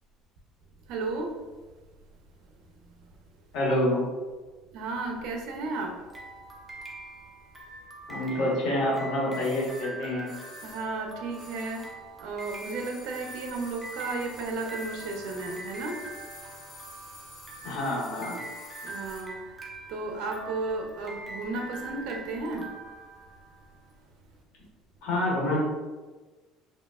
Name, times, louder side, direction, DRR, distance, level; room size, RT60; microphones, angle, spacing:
voice 1, 0.9-1.4 4.7-5.9 10.6-11.9 12.2-16.0 18.8-19.4 19.9-22.7, right 3 dB, 70° right, 2 dB, 0.7 m, -33 dB
voice 2, 3.5-4.1 8.1-10.3 17.6-18.4 25.0-25.6, left 1 dB, 70° left, -4 dB, 1.5 m, -27 dB
sound 1, 6.1-23.8, right 2 dB, 10° right, 0.6 m, -44 dB
sound 2, 9.3-12.1 12.3-19.3 19.6-19.7, left 1 dB, 15° left, 1.4 m, -49 dB
5.0 x 2.7 x 2.4 m, 1.3 s
cardioid pair, 145°, 0 cm